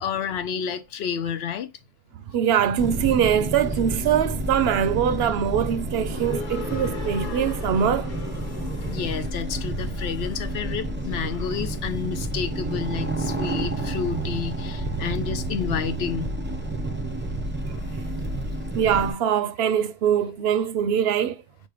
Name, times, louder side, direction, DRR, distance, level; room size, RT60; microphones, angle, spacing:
voice 1, 0.0-1.7 8.9-16.3 17.7-18.0, left 7 dB, 80° left, 0.9 m, -30 dB
voice 2, 2.3-8.1 18.7-21.4, right 8 dB, 75° right, 0.8 m, -23 dB
sound 1, 2.8-19.1, right 1 dB, 15° right, 0.5 m, -30 dB
sound 2, 6.1-12.0, left 4 dB, 50° left, 1.1 m, -40 dB
5.3 x 2.1 x 4.7 m
omnidirectional pair, 1.1 m